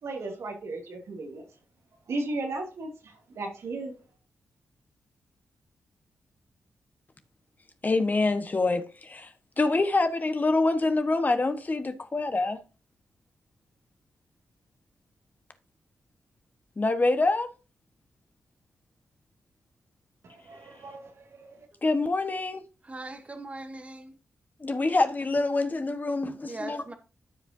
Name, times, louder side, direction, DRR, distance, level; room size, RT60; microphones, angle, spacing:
voice 1, 0.0-1.4 2.1-3.9 20.2-21.7, right 2 dB, 70° right, 2.5 m, -36 dB
voice 2, 7.8-12.6 16.8-17.5 21.8-22.6 24.6-26.9, left 3 dB, 35° left, 1.3 m, -26 dB
voice 3, 22.8-24.1 26.5-26.9, right 2 dB, 25° right, 1.1 m, -40 dB
13.5 x 5.1 x 2.7 m
cardioid pair, 50°, 5 cm